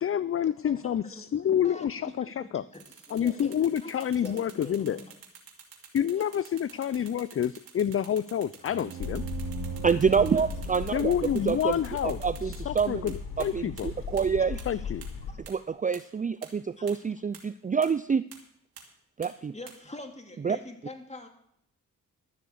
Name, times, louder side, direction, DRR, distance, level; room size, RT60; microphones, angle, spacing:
voice 1, 0.0-2.6 3.1-5.0 5.9-9.2 10.9-13.9 14.7-15.1, left 9 dB, 40° left, 17 dB, 0.5 m, -28 dB
voice 2, 1.1-5.2 6.2-6.4 10.2-10.4 14.4-14.9 15.3-15.4 16.8-17.2 19.5-21.3, left 2 dB, 20° left, 4 dB, 2.4 m, -45 dB
sound 1, 2.7-13.1 13.4-13.5 13.8-13.9 14.2-14.3 14.6-14.7 15.0-15.1 15.4-15.5 15.9-16.0 16.4-16.5 16.9-17.0 17.3-17.4 17.8-17.9 18.3-18.4 18.8-18.9 19.2-19.3 19.7-19.8, right 8 dB, 75° right, 2.6 m, -48 dB
sound 2, 8.6-13.2, right 9 dB, 55° right, 0.7 m, -41 dB
sound 3, 9.0-15.3, left 6 dB, 75° left, 3.3 m, -38 dB
voice 3, 9.8-11.1 11.5-11.8 12.0-14.6 15.5-18.2 19.2-19.5 20.4-20.6, right 6 dB, 20° right, 14 dB, 0.4 m, -27 dB
12.5 x 7.0 x 8.1 m, 0.72 s
supercardioid pair, 50°, 36 cm